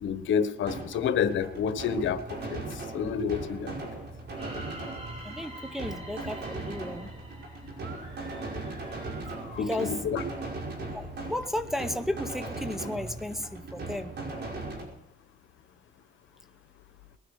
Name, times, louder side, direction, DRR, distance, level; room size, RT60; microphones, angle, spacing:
voice 1, 0.0-3.7 9.6-10.2, left 7 dB, 75° left, 10 dB, 1.3 m, -29 dB
sound 1, 0.6-14.8, right 2 dB, 60° right, 5.5 m, -38 dB
sound 2, 4.3-8.4, right 1 dB, 30° right, 6.0 m, -46 dB
voice 2, 5.2-7.1 9.6-10.0 10.9-14.1, left 1 dB, ahead, 7 dB, 1.0 m, -34 dB
sound 3, 7.7-10.3, right 2 dB, 90° right, 7.2 m, -50 dB
20.5 x 9.9 x 6.6 m, 0.81 s
cardioid pair, 90°, 20 cm